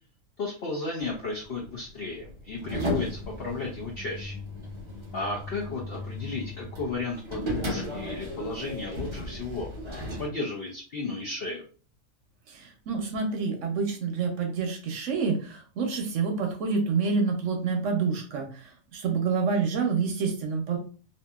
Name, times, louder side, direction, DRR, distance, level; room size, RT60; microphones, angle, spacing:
voice 1, 0.4-4.4 5.1-9.7 10.0-11.6, left 3 dB, 60° left, -2 dB, 0.6 m, -34 dB
sound 1, 1.0-10.3, equal, 40° right, 0.4 m, -35 dB
voice 2, 12.5-20.8, right 5 dB, 70° right, 3 dB, 0.9 m, -28 dB
2.7 x 2.5 x 2.3 m, 0.39 s
omnidirectional pair, 1.5 m